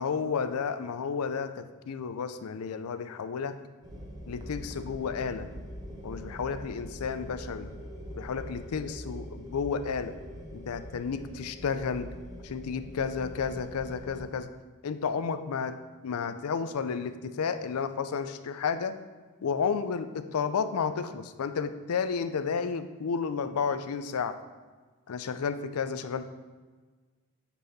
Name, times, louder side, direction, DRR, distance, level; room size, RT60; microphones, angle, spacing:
voice 1, 0.0-3.6 4.3-5.5 6.0-7.7 8.2-10.1 10.5-12.1 12.4-14.5 14.8-19.0 19.4-24.4 25.1-26.2, left 6 dB, 90° left, 11 dB, 0.4 m, -32 dB
sound 1, 3.8-14.2, equal, 15° right, 1.1 m, -43 dB
8.1 x 4.2 x 4.0 m, 1.4 s
head